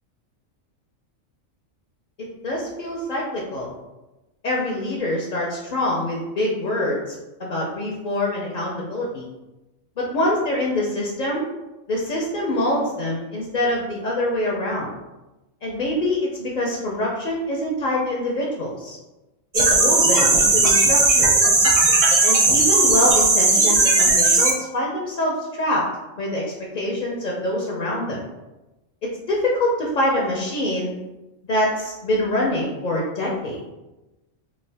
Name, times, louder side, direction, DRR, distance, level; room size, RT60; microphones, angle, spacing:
voice 1, 2.4-3.7 4.4-7.1 7.4-9.3 10.0-11.4 11.9-14.9 15.6-19.0 19.5-21.3 22.2-25.8 26.2-26.4 26.7-28.2 29.3-31.0 31.4-33.7, left 1 dB, 55° left, -3 dB, 0.5 m, -25 dB
sound 1, 19.5-24.5, right 3 dB, 65° right, 0.3 m, -16 dB
3.6 x 2.4 x 3.3 m, 1.1 s
omnidirectional pair, 1.3 m